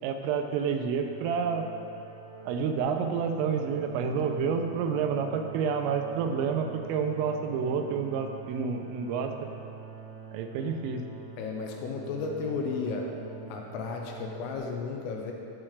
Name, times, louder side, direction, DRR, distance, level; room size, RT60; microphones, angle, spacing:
voice 1, 0.0-1.7 2.5-9.3 10.3-11.0, right 6 dB, 85° right, 5 dB, 3.3 m, -29 dB
sound 1, 1.0-14.6, right 5 dB, 60° right, 2.3 m, -45 dB
voice 2, 11.4-13.1 13.5-15.3, left 4 dB, 90° left, 1 dB, 3.6 m, -33 dB
17.0 x 7.4 x 3.3 m, 2.6 s
omnidirectional pair, 5.7 m